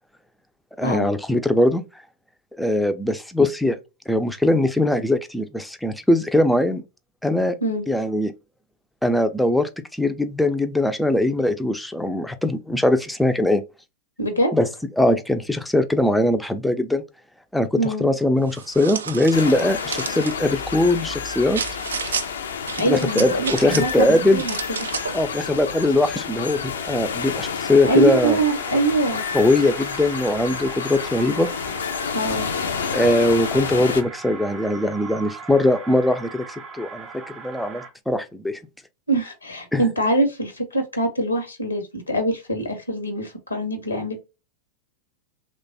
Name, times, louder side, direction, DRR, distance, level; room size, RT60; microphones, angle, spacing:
voice 1, 0.8-1.8 2.6-3.8 4.1-6.8 7.2-7.6 7.9-8.3 9.0-13.6 14.5-14.7 15.0-17.0 17.5-21.6 22.1-22.2 22.9-24.4 25.1-28.4 29.3-31.5 32.9-38.6 39.7-39.8, left 1 dB, 5° left, 0.4 m, -21 dB
voice 2, 14.2-14.5 17.8-18.1 22.8-24.8 27.8-29.2 32.1-32.5 39.1-44.3, right 1 dB, 80° left, 0.8 m, -23 dB
sound 1, 18.5-20.4 21.5-22.3 22.7-24.0 24.4-25.2, right 6 dB, 70° right, 0.3 m, -31 dB
sound 2, 19.3-34.0, left 6 dB, 65° left, 0.4 m, -30 dB
sound 3, 27.9-37.9, right 5 dB, 30° right, 0.7 m, -39 dB
3.1 x 2.2 x 2.6 m
figure-of-eight pair, 90°, 0 cm